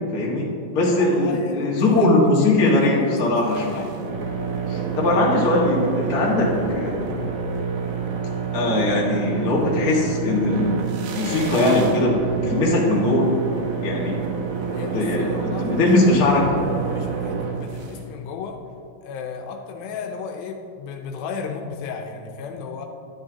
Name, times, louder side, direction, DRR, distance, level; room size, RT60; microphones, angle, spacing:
voice 1, 0.1-0.5 0.7-3.8 4.7-7.0 8.5-10.8 11.1-12.2 12.4-13.3 13.8-14.2 14.9-15.3 15.6-16.4, left 2 dB, 65° left, -4 dB, 0.9 m, -20 dB
voice 2, 1.0-2.1 2.6-4.0 6.2-6.3 14.7-15.9 16.9-18.6 19.0-22.9, left 5 dB, 85° left, 3 dB, 2.4 m, -35 dB
sound 1, 3.4-18.0, right 6 dB, 70° right, 2.5 m, -28 dB
11.0 x 9.7 x 2.8 m, 2.6 s
omnidirectional pair, 4.2 m